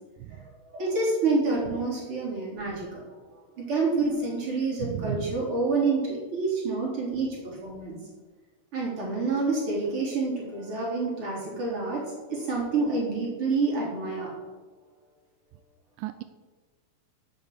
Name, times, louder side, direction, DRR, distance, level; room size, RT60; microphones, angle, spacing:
voice 1, 0.7-2.9 3.6-8.0 8.7-12.0 12.3-14.3, right 3 dB, 35° right, -4 dB, 4.2 m, -28 dB
voice 2, 4.8-5.4 16.0-16.2, right 13 dB, 85° right, 10 dB, 1.8 m, -34 dB
8.1 x 8.0 x 8.4 m, 1.3 s
omnidirectional pair, 4.4 m